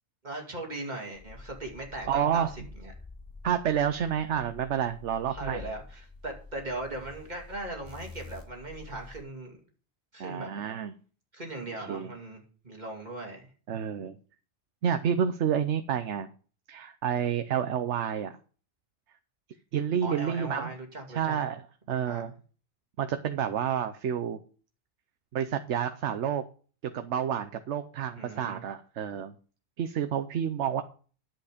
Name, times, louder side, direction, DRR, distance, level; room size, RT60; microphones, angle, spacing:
voice 1, 0.2-2.5 2.8-2.9 5.3-9.6 10.1-10.5 11.3-13.5 20.0-21.4 21.9-22.3 28.2-28.6, right 2 dB, 40° right, 1 dB, 2.6 m, -39 dB
sound 1, 1.1-9.2, left 3 dB, 15° left, 2.8 m, -48 dB
voice 2, 2.1-2.5 3.4-5.6 10.2-10.9 11.7-12.1 13.7-14.2 14.8-16.3 16.7-18.4 19.7-20.7 21.1-22.3 23.0-24.4 25.3-26.4 26.9-29.4 29.8-30.8, right 8 dB, 85° right, 9 dB, 1.0 m, -29 dB
11.0 x 7.8 x 5.0 m, 0.40 s
omnidirectional pair, 1.2 m